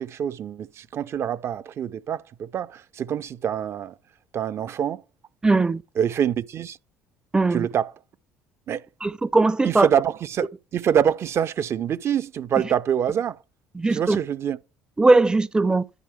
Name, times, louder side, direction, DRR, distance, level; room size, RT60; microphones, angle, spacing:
voice 1, 0.0-3.9 4.3-5.0 5.9-6.8 7.5-8.0 8.7-8.9 9.6-13.4 13.9-14.6, right 9 dB, 50° right, 0.7 m, -25 dB
voice 2, 5.4-5.8 7.3-7.7 9.0-9.9 13.8-14.2 15.0-15.8, right 3 dB, 15° right, 0.5 m, -19 dB
11.0 x 9.2 x 3.2 m
supercardioid pair, 75°, 6 cm